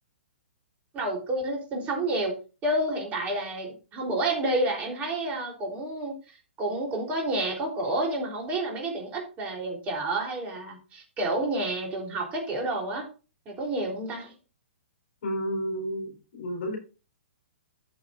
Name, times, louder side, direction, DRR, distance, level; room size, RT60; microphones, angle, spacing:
voice 1, 0.9-2.3 2.6-13.1 13.5-14.3, right 1 dB, 25° right, 3.7 m, -29 dB
voice 2, 15.2-16.8, equal, 60° left, 4.3 m, -31 dB
14.0 x 6.5 x 2.6 m
hypercardioid pair, 120°, 6 cm